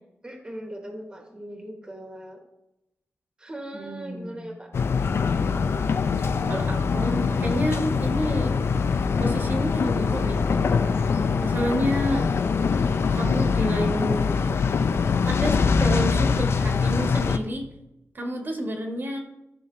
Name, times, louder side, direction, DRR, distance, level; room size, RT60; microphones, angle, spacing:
voice 1, 0.2-2.4 3.4-4.7, right 1 dB, 20° right, 2 dB, 1.3 m, -39 dB
voice 2, 3.7-4.6 6.5-8.5 9.2-10.8 11.4-12.3 13.1-14.3 15.2-17.7 18.1-19.2, equal, 45° right, 2 dB, 1.4 m, -30 dB
sound 1, 4.7-17.4, left 5 dB, 60° left, 0.5 m, -23 dB
13.5 x 5.4 x 3.2 m, 0.88 s
wide cardioid pair, 145°, 5 cm